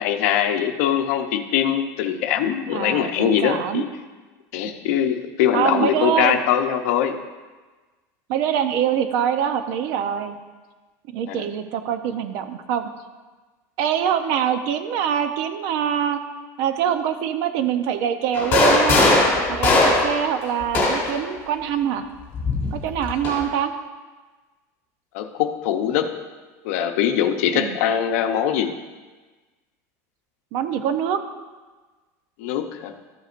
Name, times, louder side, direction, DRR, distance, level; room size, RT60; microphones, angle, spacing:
voice 1, 0.0-3.9 4.5-7.2 11.3-11.4 25.1-26.1 26.6-28.7 32.4-32.9, left 9 dB, 65° left, 6 dB, 0.7 m, -22 dB
voice 2, 2.7-3.9 4.6-5.0 5.5-6.4 8.3-10.4 11.1-12.9 13.8-16.2 16.6-19.2 19.5-22.0 22.7-23.7 27.5-27.8 30.5-31.2, right 9 dB, 50° right, 9 dB, 0.7 m, -24 dB
sound 1, 18.3-21.2 22.3-23.4, left 2 dB, 25° left, 2.7 m, -19 dB
13.5 x 8.0 x 2.5 m, 1.3 s
cardioid pair, 170°, 8 cm